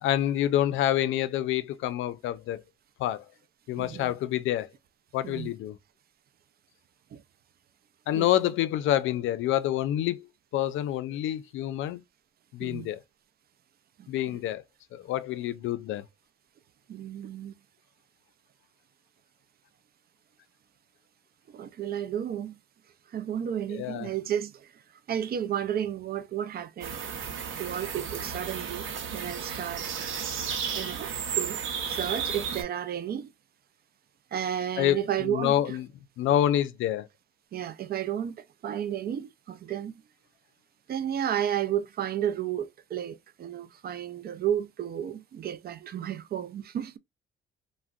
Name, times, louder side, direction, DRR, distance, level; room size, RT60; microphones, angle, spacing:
voice 1, 0.0-2.6 3.0-3.2 3.7-4.7 5.1-5.8 8.1-10.3 10.5-12.0 12.5-13.0 14.1-14.6 14.9-16.0 23.7-24.1 34.8-35.9 36.2-37.1, left 12 dB, 80° left, 0.4 m, -27 dB
voice 2, 3.8-4.1 5.2-5.5 7.1-7.2 8.1-8.5 12.6-12.9 14.0-14.1 16.9-17.5 21.5-22.5 23.1-24.7 25.1-27.0 27.6-28.9 29.1-29.8 30.7-31.6 31.9-33.3 34.3-35.8 37.5-38.3 38.6-39.9 40.9-47.0, right 10 dB, 50° right, 0.4 m, -32 dB
sound 1, 26.8-32.6, right 7 dB, 80° right, 0.8 m, -33 dB
3.5 x 2.1 x 2.3 m
cardioid pair, 90°, 20 cm